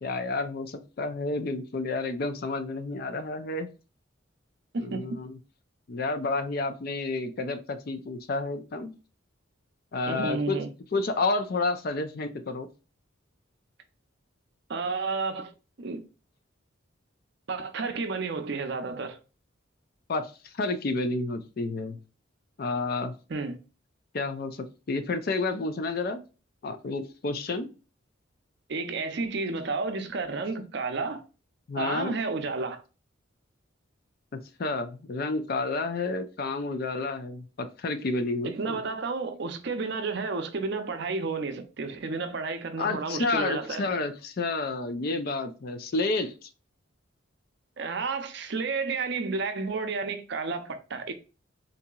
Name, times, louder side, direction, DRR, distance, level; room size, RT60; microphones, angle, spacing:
voice 1, 0.0-3.7 4.8-5.4 5.9-8.9 9.9-10.6 10.9-12.7 20.1-22.0 22.6-23.1 24.1-26.2 26.6-27.7 31.7-32.1 34.3-38.8 42.8-46.5, left 3 dB, 50° left, 0.4 m, -30 dB
voice 2, 4.7-5.2 10.0-10.7 14.7-15.5 15.8-16.0 17.5-19.2 23.3-23.6 28.7-31.2 31.8-32.8 38.4-43.9 47.8-51.1, right 4 dB, 55° right, 0.5 m, -31 dB
3.9 x 2.8 x 2.3 m
head